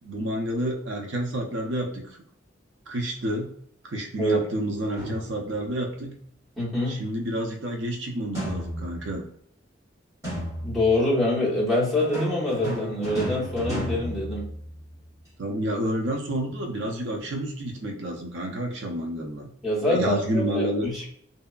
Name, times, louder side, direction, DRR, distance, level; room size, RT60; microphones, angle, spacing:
voice 1, 0.0-2.1 2.9-3.5 3.8-6.1 6.9-9.2 15.4-19.5 19.8-20.9, right 1 dB, 80° right, 1 dB, 0.5 m, -29 dB
sound 1, 5.0-5.6 8.3-9.2 10.2-11.0 12.0-14.9, right 1 dB, 15° right, 1.2 m, -32 dB
voice 2, 6.6-7.0 10.6-14.5 19.6-21.1, left 1 dB, ahead, -6 dB, 0.9 m, -25 dB
2.7 x 2.2 x 2.3 m, 0.64 s
head